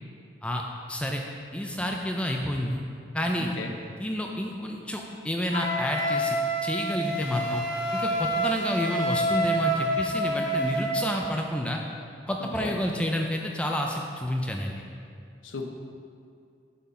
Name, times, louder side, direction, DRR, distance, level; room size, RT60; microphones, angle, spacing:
voice 1, 0.9-1.2 1.5-2.8 3.1-3.5 4.0-7.6 7.9-11.8 12.3-14.8, left 1 dB, 5° left, 1 dB, 0.3 m, -29 dB
Wind instrument woodwind instrument, 5.5-11.0, right 1 dB, 70° left, 1.1 m, -27 dB
voice 2, 12.4-12.8 15.4-15.7, left 3 dB, 90° left, 3 dB, 0.7 m, -35 dB
8.0 x 3.9 x 4.2 m, 2.3 s
head